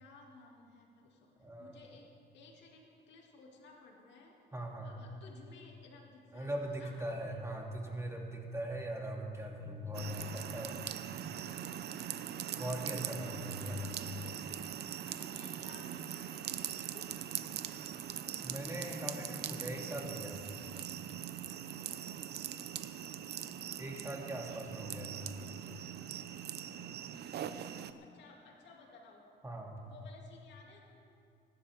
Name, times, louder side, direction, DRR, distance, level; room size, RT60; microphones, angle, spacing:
voice 1, 0.0-4.4 4.8-7.1 11.2-11.6 15.0-17.1 24.4-25.6 26.6-26.9 28.0-29.3 29.8-31.0, left 3 dB, 85° left, 0 dB, 2.5 m, -57 dB
voice 2, 1.4-1.8 4.5-4.9 6.3-11.0 12.5-14.0 18.4-20.3 23.8-25.2 29.4-29.8, equal, 15° right, -1 dB, 2.4 m, -40 dB
sound 1, 9.9-27.9, right 10 dB, 70° right, 0.7 m, -42 dB
24.5 x 11.5 x 3.6 m, 2.6 s
cardioid pair, 95°, 18 cm